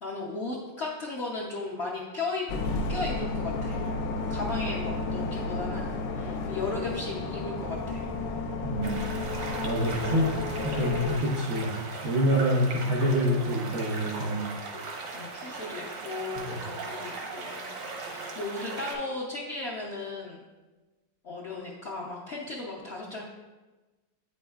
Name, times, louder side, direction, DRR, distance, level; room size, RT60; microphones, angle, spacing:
voice 1, 0.0-2.4 2.9-3.8 4.3-8.1 15.1-17.7 18.0-20.4 21.2-23.2, left 3 dB, 60° left, -4 dB, 0.6 m, -36 dB
sound 1, 2.5-11.2, left 3 dB, 80° left, 1.3 m, -32 dB
voice 2, 8.6-9.1 9.6-10.3 10.6-11.7 12.0-14.4 16.4-16.5, equal, 60° right, -4 dB, 0.6 m, -26 dB
sound 2, 8.8-18.9, right 3 dB, 85° right, 1.6 m, -38 dB
8.4 x 5.2 x 2.3 m, 1.2 s
omnidirectional pair, 2.0 m